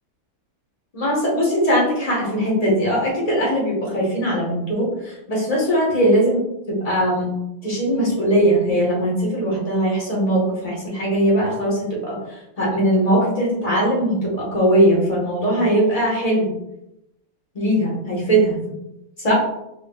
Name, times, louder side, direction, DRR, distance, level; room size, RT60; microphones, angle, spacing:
voice 1, 0.9-6.4 6.7-7.3 7.6-16.5 17.5-18.6 19.2-19.3, right 1 dB, 20° left, -4 dB, 1.4 m, -20 dB
4.9 x 4.2 x 2.5 m, 0.86 s
omnidirectional pair, 2.4 m